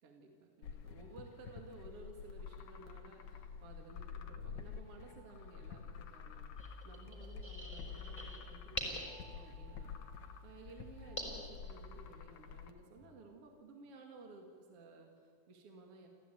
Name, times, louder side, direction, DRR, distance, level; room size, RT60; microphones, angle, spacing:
voice 1, 0.0-10.0 10.4-16.1, right 3 dB, 50° right, 3 dB, 3.0 m, -56 dB
sound 1, 0.6-12.7, left 6 dB, 70° left, 2.5 m, -50 dB
sound 2, 1.0-2.2 5.0-6.6 9.0-12.5 13.0-13.9, right 3 dB, 20° right, 7.8 m, -67 dB
sound 3, 6.6-12.1, left 1 dB, 10° left, 4.1 m, -46 dB
29.0 x 15.0 x 9.2 m, 2.2 s
omnidirectional pair, 3.4 m